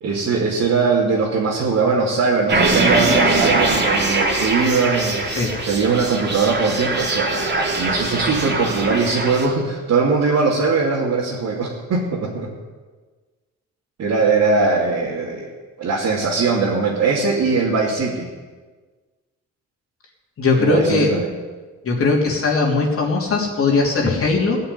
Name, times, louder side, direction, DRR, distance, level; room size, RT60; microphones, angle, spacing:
voice 1, 0.0-5.2 5.6-12.5 14.0-15.5 15.8-18.3 20.6-21.3, right 4 dB, 65° right, -5 dB, 2.7 m, -20 dB
sound 1, 2.5-9.5, right 2 dB, 35° right, 2.8 m, -21 dB
voice 2, 20.4-21.1 21.8-24.6, left 3 dB, 45° left, -2 dB, 3.2 m, -19 dB
17.0 x 5.6 x 9.8 m, 1.4 s
cardioid pair, 90°, 30 cm